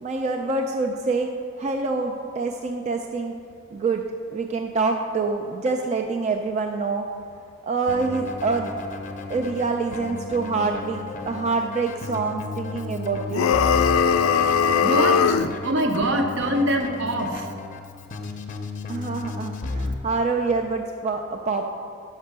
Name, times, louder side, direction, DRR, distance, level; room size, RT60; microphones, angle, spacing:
voice 1, 0.0-1.3 1.6-3.3 3.7-4.0 4.3-7.1 7.6-8.7 9.3-13.6 18.9-21.7, right 4 dB, 35° right, 3 dB, 0.3 m, -26 dB
Keyboard (musical), 7.9-19.9, left 3 dB, 40° left, 0.5 m, -34 dB
sound 1, 13.3-15.5, left 7 dB, 90° left, 0.3 m, -19 dB
voice 2, 14.8-15.4 15.6-17.5, right 1 dB, 65° right, 3 dB, 0.8 m, -24 dB
5.9 x 5.5 x 6.6 m, 2.4 s
head